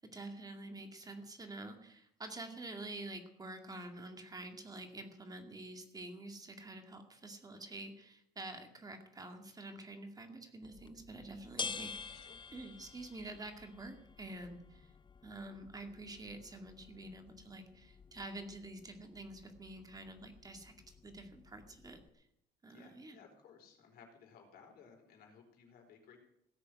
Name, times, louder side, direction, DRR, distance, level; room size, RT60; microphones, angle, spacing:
voice 1, 0.0-14.9 15.2-22.3 22.6-23.2, right 2 dB, 20° right, 5 dB, 2.2 m, -48 dB
sound 1, 10.6-22.1, left 5 dB, 30° left, 0.7 m, -50 dB
voice 2, 22.7-26.2, left 6 dB, 65° left, 2 dB, 4.3 m, -59 dB
17.0 x 6.9 x 9.3 m, 0.76 s
cardioid pair, 110°, 17 cm